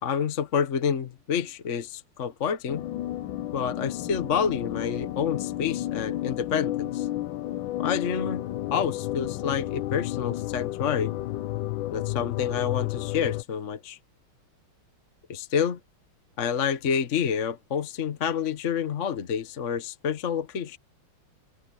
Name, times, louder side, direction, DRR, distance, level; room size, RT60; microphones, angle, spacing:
voice 1, 0.0-2.8 3.5-7.1 7.8-8.4 8.7-11.1 11.9-14.0 15.3-15.8 16.4-20.8, left 7 dB, 45° left, 1.2 m, -28 dB
sound 1, 2.7-13.4, left 15 dB, 70° left, 1.3 m, -31 dB
omnidirectional pair, 2.3 m